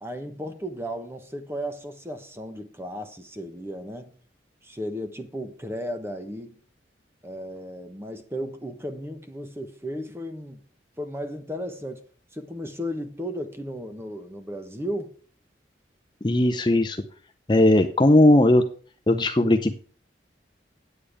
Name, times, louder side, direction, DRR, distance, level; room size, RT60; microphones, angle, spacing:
voice 1, 0.0-4.2 4.6-6.6 7.2-10.6 11.0-12.1 12.3-15.1, equal, 15° right, 1.1 m, -35 dB
voice 2, 16.2-17.0 17.5-18.7 19.1-19.7, left 1 dB, 25° left, 0.6 m, -18 dB
9.5 x 8.6 x 5.0 m
head